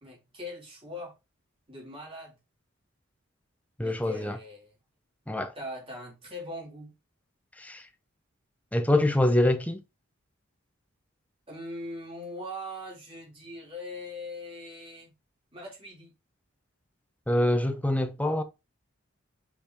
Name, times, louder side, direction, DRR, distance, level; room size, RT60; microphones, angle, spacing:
voice 1, 0.0-1.1 1.7-2.4 3.8-4.7 5.5-6.9 11.5-15.1 15.5-16.1, left 1 dB, 25° right, 3.4 m, -41 dB
voice 2, 3.8-4.4 5.3-5.5 7.6-7.8 8.7-9.8 17.3-18.4, left 1 dB, 5° left, 0.7 m, -25 dB
5.2 x 5.2 x 3.5 m
head